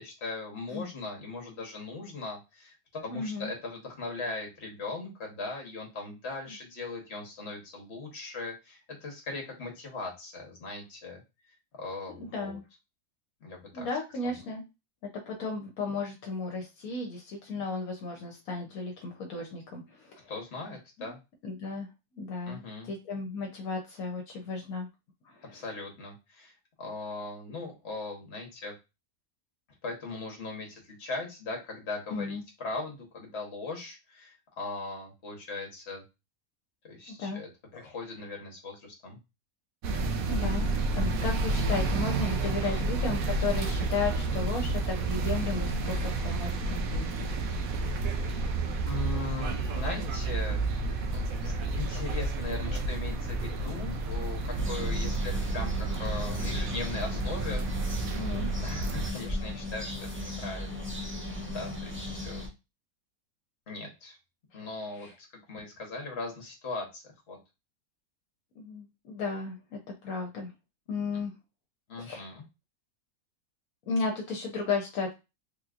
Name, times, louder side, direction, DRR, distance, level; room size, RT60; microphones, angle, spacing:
voice 1, 0.0-11.2 11.8-12.6 13.4-13.9 14.2-14.3 20.3-21.2 22.5-22.9 25.5-26.5 26.8-28.7 29.8-36.0 36.8-37.5 37.7-39.2 42.4-42.9 48.9-50.6 51.1-55.7 56.0-57.7 58.6-60.9 61.5-62.5 63.7-64.2 64.5-67.4 71.1-71.2 71.9-72.4, left 3 dB, 50° left, 1 dB, 1.3 m, -39 dB
voice 2, 3.1-3.5 12.2-12.6 13.7-14.6 15.1-20.2 21.0-21.1 21.4-21.9 22.1-24.9 25.3-25.6 32.1-32.4 37.2-37.4 37.7-37.9 40.3-47.1 58.1-58.5 65.0-65.1 68.6-69.8 70.0-70.5 70.9-71.3 72.0-72.3 73.9-75.1, left 4 dB, 75° left, 1 dB, 1.2 m, -34 dB
sound 1, 39.8-59.1, right 3 dB, 75° right, 1.0 m, -30 dB
sound 2, 54.5-62.5, left 1 dB, 15° right, 0.4 m, -37 dB
3.6 x 2.9 x 2.4 m, 0.26 s
omnidirectional pair, 1.5 m